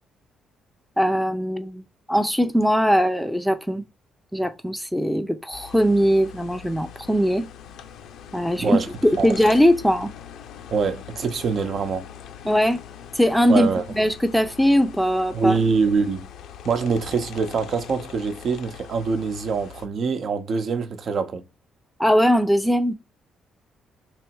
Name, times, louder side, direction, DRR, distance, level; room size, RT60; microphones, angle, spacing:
voice 1, 1.0-1.8 2.1-3.8 4.3-7.5 8.3-10.1 12.4-12.8 13.2-15.6 22.0-22.9, equal, ahead, 0.5 m, -20 dB
sound 1, 5.5-19.9, left 9 dB, 80° left, 0.6 m, -42 dB
voice 2, 10.7-12.1 13.5-13.8 15.3-16.3 16.6-21.4, right 5 dB, 60° right, 0.8 m, -24 dB
3.3 x 3.1 x 4.5 m
cardioid pair, 90°, 0 cm